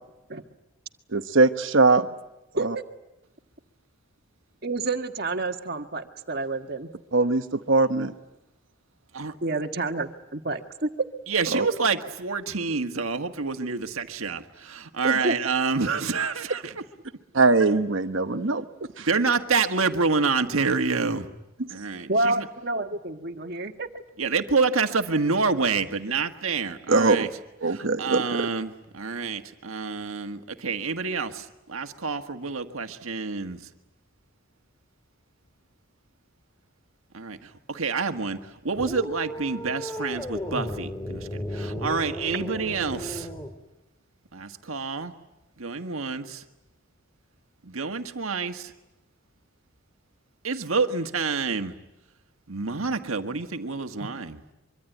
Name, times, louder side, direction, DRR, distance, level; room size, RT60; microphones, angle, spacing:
voice 1, 1.1-2.0 2.6-2.7 7.1-8.1 11.5-11.7 17.3-18.6 19.0-19.1 26.9-27.3 27.6-28.2, right 3 dB, 65° right, 9 dB, 1.1 m, -21 dB
voice 2, 4.6-6.9 9.4-10.9 15.0-15.4 22.1-23.9, right 2 dB, 50° right, 6 dB, 1.6 m, -28 dB
voice 3, 11.3-16.8 19.0-21.3 21.7-22.5 24.2-27.3 27.7-33.6 37.1-43.3 44.3-45.1 45.6-46.4 47.6-48.7 50.4-51.7 52.5-54.5, right 4 dB, 85° right, 7 dB, 1.6 m, -28 dB
sound 1, 38.8-43.6, left 1 dB, 15° left, 2.5 m, -34 dB
24.5 x 24.5 x 9.3 m, 0.95 s
head